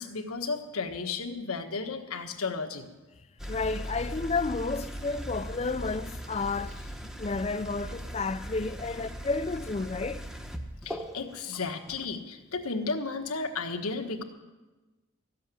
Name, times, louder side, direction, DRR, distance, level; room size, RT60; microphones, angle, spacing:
voice 1, 0.0-2.9 10.8-14.2, left 4 dB, 85° left, 1.4 m, -33 dB
sound 1, 3.4-12.1, equal, ahead, 0.8 m, -39 dB
voice 2, 3.5-6.7 7.2-10.2, left 3 dB, 30° left, 0.4 m, -31 dB
14.5 x 7.6 x 9.9 m
head